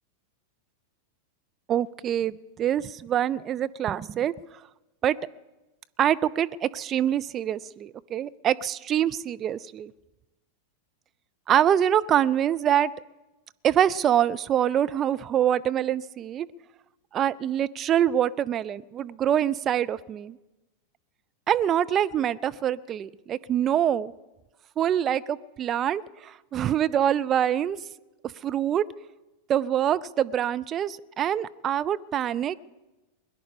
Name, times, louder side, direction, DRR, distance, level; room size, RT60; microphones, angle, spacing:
voice 1, 1.7-4.6 5.0-5.2 6.0-9.9 11.5-12.9 13.6-16.5 17.1-20.4 21.5-24.1 24.8-27.8 28.4-28.8 29.5-32.6, right 10 dB, 30° right, 14 dB, 0.4 m, -25 dB
21.5 x 10.5 x 5.1 m, 1.1 s
figure-of-eight pair, 90°, 0 cm